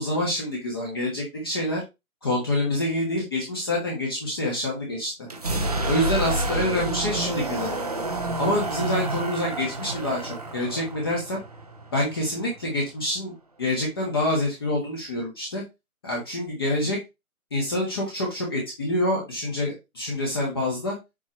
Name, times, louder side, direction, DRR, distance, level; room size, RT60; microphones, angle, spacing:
voice 1, 0.0-1.8 2.2-5.1 5.8-7.8 8.4-11.4 11.9-13.3 13.6-15.6 16.0-17.0 17.5-21.0, left 1 dB, 15° left, -2 dB, 1.2 m, -26 dB
sound 1, 5.2-13.0, right 2 dB, 25° right, 0.7 m, -29 dB
7.3 x 5.7 x 3.0 m, 0.23 s
hypercardioid pair, 170°, 43 cm